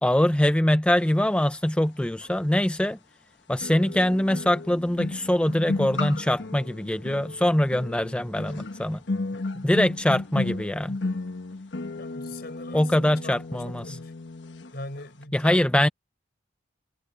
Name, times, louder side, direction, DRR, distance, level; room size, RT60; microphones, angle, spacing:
voice 1, 0.0-3.0 3.5-9.0 9.6-11.0 12.7-14.0 15.3-15.9, left 1 dB, 5° left, 0.5 m, -23 dB
sound 1, 2.2-2.3 3.6-14.7 15.0-15.2, left 2 dB, 75° left, 1.2 m, -34 dB
voice 2, 9.3-9.7 10.4-10.5 12.0-14.1 14.7-15.6, left 2 dB, 60° left, 5.3 m, -41 dB
head